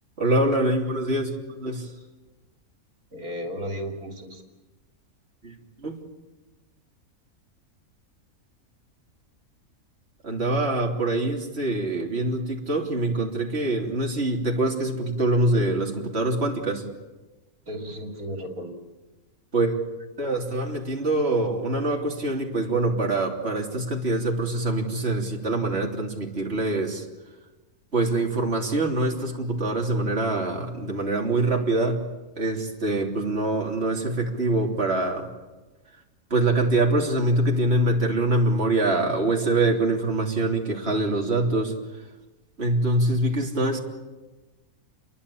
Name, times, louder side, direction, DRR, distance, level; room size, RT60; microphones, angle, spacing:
voice 1, 0.2-1.9 5.4-6.0 10.2-16.8 19.5-19.7 20.2-27.1 27.9-32.0 32.4-35.3 36.3-41.7 42.6-43.8, right 2 dB, 45° right, 0 dB, 3.6 m, -24 dB
voice 2, 3.1-4.4 17.7-18.8, equal, 75° right, 3 dB, 3.5 m, -34 dB
29.5 x 23.0 x 8.6 m, 1.2 s
omnidirectional pair, 1.5 m